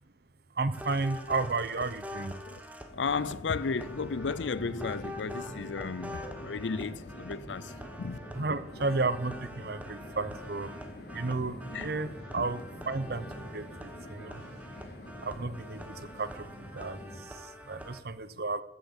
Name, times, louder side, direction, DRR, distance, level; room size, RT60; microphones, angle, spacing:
voice 1, 0.6-2.3 8.3-10.7 11.1-11.6 11.8-13.3 13.5-14.4 15.2-16.3 16.7-17.0 17.7-18.6, right 3 dB, 55° right, 0.8 m, -32 dB
sound 1, 0.7-18.0, left 1 dB, 10° right, 1.2 m, -45 dB
voice 2, 2.9-7.7 8.0-8.2 11.7-12.4, left 5 dB, 85° left, 0.5 m, -34 dB
sound 2, 2.9-17.2, equal, 60° left, 3.1 m, -45 dB
14.5 x 7.9 x 7.3 m
head